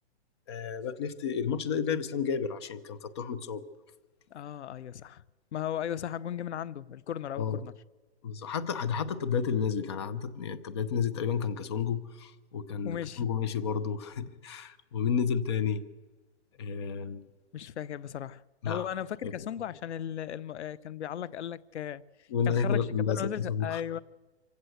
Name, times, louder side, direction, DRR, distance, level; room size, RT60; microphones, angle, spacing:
voice 1, 0.5-3.6 7.4-7.7 8.2-15.8 16.6-17.2 18.6-18.9 19.2-19.3 22.3-23.8, left 7 dB, 25° left, 0.6 m, -31 dB
voice 2, 4.3-5.2 5.5-7.7 12.8-13.3 17.5-24.0, left 10 dB, 85° left, 0.8 m, -36 dB
25.0 x 16.5 x 7.9 m
hypercardioid pair, 175°, 33 cm